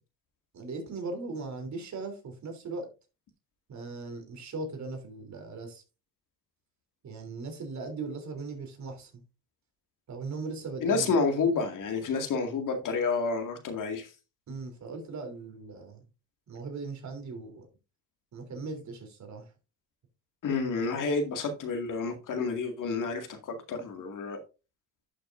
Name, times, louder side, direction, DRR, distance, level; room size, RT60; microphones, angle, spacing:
voice 1, 0.5-2.9 3.7-5.8 7.0-9.2 10.1-11.1 14.5-16.0 16.5-17.7 18.3-19.5, right 3 dB, 45° right, 3.3 m, -39 dB
voice 2, 10.8-14.1 20.4-24.4, left 4 dB, 55° left, 2.1 m, -29 dB
11.5 x 6.7 x 2.6 m
cardioid pair, 110°, 38 cm